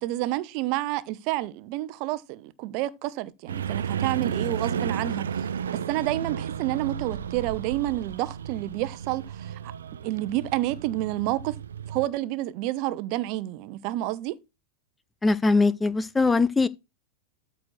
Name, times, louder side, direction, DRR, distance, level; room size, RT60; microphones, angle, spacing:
voice 1, 0.0-9.7 10.0-11.6 11.9-14.3, right 16 dB, 45° right, 0.9 m, -29 dB
sound 1, 3.5-12.1, right 8 dB, 65° right, 0.7 m, -33 dB
voice 2, 15.2-16.7, left 3 dB, 10° left, 0.5 m, -21 dB
13.5 x 4.5 x 4.5 m
figure-of-eight pair, 90°, 0 cm